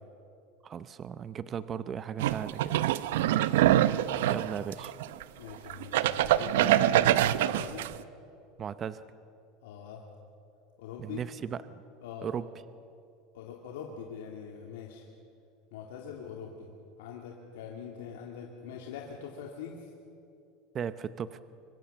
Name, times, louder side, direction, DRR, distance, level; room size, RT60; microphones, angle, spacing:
voice 1, 0.6-2.8 4.3-4.9 8.6-9.0 11.0-11.6 12.2-12.5 20.7-21.4, right 8 dB, 30° right, 14 dB, 0.7 m, -36 dB
sound 1, 2.2-5.2 5.7-8.0, right 13 dB, 85° right, 0.7 m, -25 dB
voice 2, 3.3-3.6 5.4-7.9 9.6-10.0 10.8-11.2 12.0-12.3 13.3-15.1 15.7-16.7 17.0-19.9, left 7 dB, 85° left, 0 dB, 2.5 m, -43 dB
25.0 x 24.5 x 6.9 m, 2.6 s
supercardioid pair, 145°, 0 cm